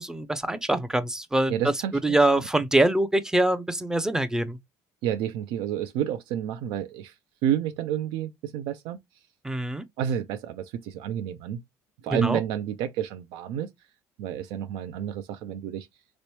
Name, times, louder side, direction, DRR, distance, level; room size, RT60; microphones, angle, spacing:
voice 1, 0.0-1.5 1.9-4.6 9.4-9.8 12.1-12.4, right 1 dB, 5° right, 0.5 m, -24 dB
voice 2, 1.5-2.2 5.0-7.1 7.4-9.0 10.0-11.6 12.0-13.7 14.2-15.9, right 10 dB, 75° right, 0.4 m, -30 dB
3.0 x 3.0 x 3.0 m
supercardioid pair, 100°, 8 cm